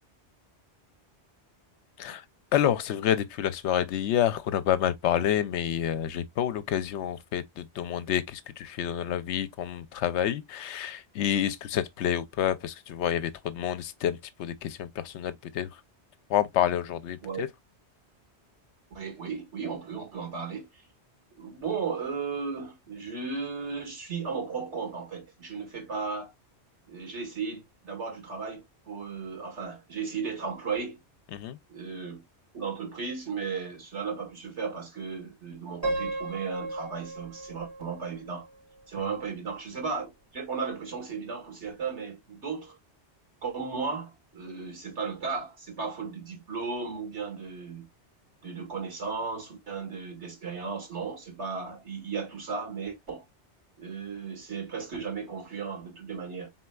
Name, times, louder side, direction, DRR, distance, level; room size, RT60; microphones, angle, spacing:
voice 1, 2.5-15.7 16.3-17.5 31.3-31.6, left 10 dB, 80° left, 0.9 m, -28 dB
voice 2, 18.9-20.8 21.3-26.3 26.9-31.0 31.7-32.2 32.5-38.5 38.9-42.8 43.4-47.9 48.4-53.2 53.8-56.5, right 5 dB, 75° right, 2.3 m, -35 dB
Piano, 35.8-38.8, right 2 dB, 15° right, 2.7 m, -35 dB
4.3 x 4.2 x 2.2 m
omnidirectional pair, 1.2 m